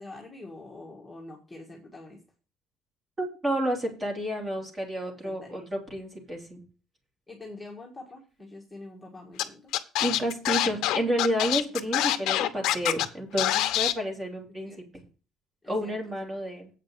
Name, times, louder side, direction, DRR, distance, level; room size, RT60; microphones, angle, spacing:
voice 1, 0.0-2.2 5.2-5.7 7.3-9.7 11.8-11.9 12.2-12.3 14.6-14.8 15.6-16.2, left 2 dB, 5° left, -3 dB, 1.7 m, -45 dB
voice 2, 3.2-6.6 10.0-14.7 15.7-16.7, equal, 20° right, 1 dB, 2.8 m, -30 dB
Scratching (performance technique), 9.4-9.5 9.7-13.1 13.4-13.9, left 13 dB, 65° left, 0.9 m, -25 dB
8.3 x 5.2 x 7.5 m, 0.34 s
cardioid pair, 170°, 0 cm